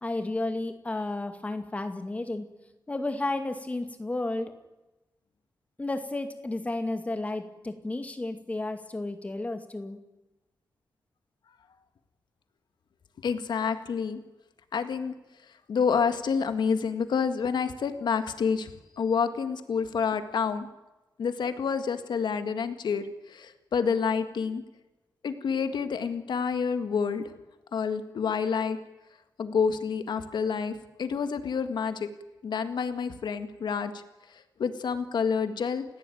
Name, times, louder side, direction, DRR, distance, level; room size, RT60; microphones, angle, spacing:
voice 1, 0.0-2.5 2.9-4.5 5.8-10.0, left 2 dB, 20° left, 7 dB, 2.2 m, -32 dB
voice 2, 13.2-14.2 14.7-15.1 15.7-20.7 21.2-24.6 25.2-27.3 27.7-28.8 29.4-32.1 32.4-34.0 34.3-35.9, left 6 dB, 85° left, 9 dB, 1.9 m, -28 dB
29.5 x 16.5 x 9.3 m, 1.0 s
wide cardioid pair, 170°, 7 cm